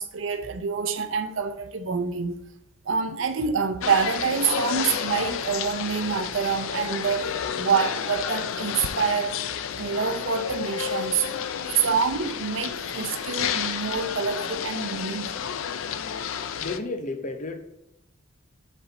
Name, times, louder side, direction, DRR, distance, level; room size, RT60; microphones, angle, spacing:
voice 1, 0.0-2.4 2.9-9.4 9.8-11.3 11.8-15.5, right 6 dB, 70° right, 0.6 m, -27 dB
sound 1, 3.8-16.8, left 7 dB, 85° left, 0.4 m, -31 dB
voice 2, 16.3-17.6, left 3 dB, 40° left, 0.7 m, -33 dB
6.7 x 4.2 x 4.0 m
head